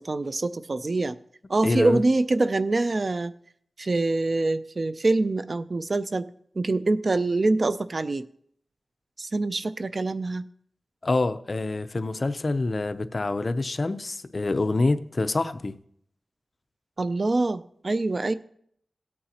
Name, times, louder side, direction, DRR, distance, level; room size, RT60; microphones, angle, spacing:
voice 1, 0.1-1.2 1.5-3.3 3.8-6.3 6.6-8.3 9.2-10.4 17.0-18.3, right 2 dB, 50° right, 0.4 m, -25 dB
voice 2, 1.6-2.0 11.0-15.8, left 2 dB, 45° left, 0.6 m, -26 dB
17.5 x 8.6 x 2.8 m
wide cardioid pair, 80°, 0 cm